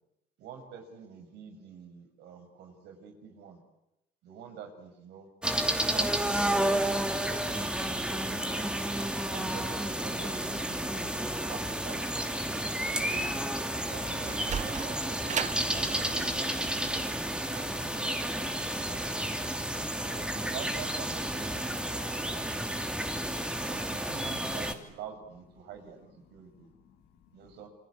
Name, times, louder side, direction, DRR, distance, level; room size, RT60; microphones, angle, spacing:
voice 1, 0.4-3.6 4.2-5.3 5.7-7.7 8.1-8.7 9.3-12.0 12.5-13.3 13.7-17.1 17.5-18.3 18.8-19.3 20.1-22.8 23.7-26.7 27.3-27.7, right 6 dB, 80° right, 6 dB, 6.3 m, -47 dB
sound 1, 5.4-24.7, right 1 dB, 5° right, 2.8 m, -31 dB
Sliding door, 13.9-19.1, right 7 dB, 45° right, 1.5 m, -38 dB
voice 2, 26.1-27.7, left 8 dB, 80° left, 3 dB, 3.7 m, -63 dB
28.0 x 24.5 x 8.6 m, 0.88 s
cardioid pair, 110°, 17 cm